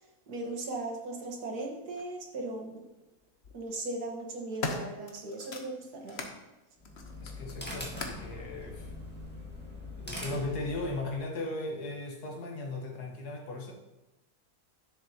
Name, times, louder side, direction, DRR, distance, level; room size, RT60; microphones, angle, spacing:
voice 1, 0.3-2.8 3.5-6.3, right 2 dB, 80° right, 1 dB, 1.9 m, -38 dB
sound 1, 2.0-2.1 3.2-3.5 4.1-6.4 6.8-8.3 9.2-9.3, left 3 dB, 50° left, 1.0 m, -40 dB
sound 2, 6.8-11.2, left 1 dB, 5° left, 1.5 m, -42 dB
voice 2, 7.2-8.9 10.0-13.7, left 2 dB, 80° left, 1 dB, 1.9 m, -37 dB
10.0 x 7.1 x 2.8 m, 0.99 s
omnidirectional pair, 1.7 m